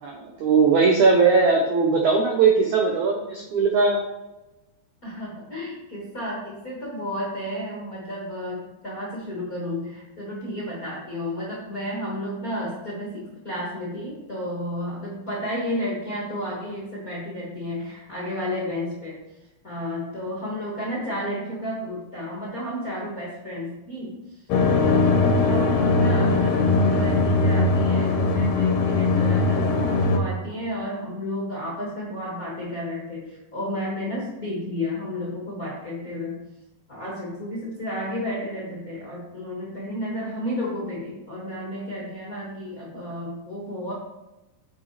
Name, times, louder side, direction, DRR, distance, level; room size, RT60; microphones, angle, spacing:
voice 1, 0.0-4.1, right 4 dB, 75° right, 0 dB, 1.7 m, -19 dB
voice 2, 5.0-19.2 19.6-24.4 24.8-36.4 36.9-43.9, left 1 dB, 45° left, -5 dB, 1.1 m, -32 dB
sound 1, 24.5-30.2, left 3 dB, 70° left, 2.0 m, -20 dB
8.8 x 6.7 x 3.3 m, 0.99 s
omnidirectional pair, 4.7 m